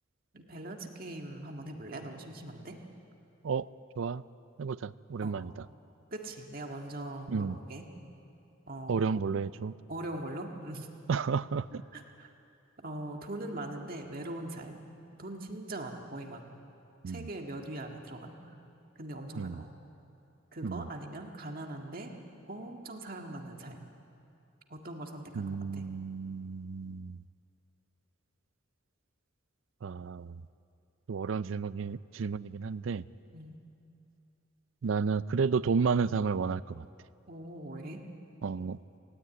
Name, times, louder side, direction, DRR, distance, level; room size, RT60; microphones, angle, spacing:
voice 1, 0.3-2.8 5.2-5.4 6.1-7.9 8.7-9.2 9.9-10.9 11.9-12.3 12.8-14.8 15.2-16.4 17.1-18.5 19.0-19.7 20.5-22.1 22.5-23.9 24.7-25.4 25.7-25.9 33.3-33.6 37.3-38.0, right 1 dB, 45° right, 3 dB, 1.8 m, -41 dB
voice 2, 4.6-5.5 7.3-7.6 8.9-9.7 11.1-11.7 17.0-17.3 19.4-19.6 20.6-20.9 25.4-27.2 29.8-30.4 31.1-33.0 34.8-36.9 38.4-38.8, right 5 dB, 70° right, 17 dB, 0.4 m, -32 dB
18.0 x 16.5 x 9.4 m, 2.7 s
head